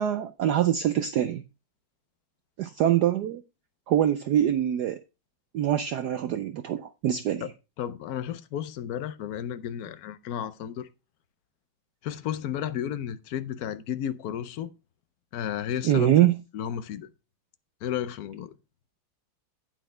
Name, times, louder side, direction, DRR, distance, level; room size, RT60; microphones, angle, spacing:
voice 1, 0.0-1.4 2.6-3.4 3.9-5.0 5.5-7.5 15.8-16.4, right 11 dB, 75° right, 0.9 m, -24 dB
voice 2, 7.8-10.9 12.0-14.7 15.3-17.1 17.8-18.5, left 10 dB, 65° left, 0.9 m, -33 dB
9.1 x 9.1 x 3.3 m
omnidirectional pair, 2.3 m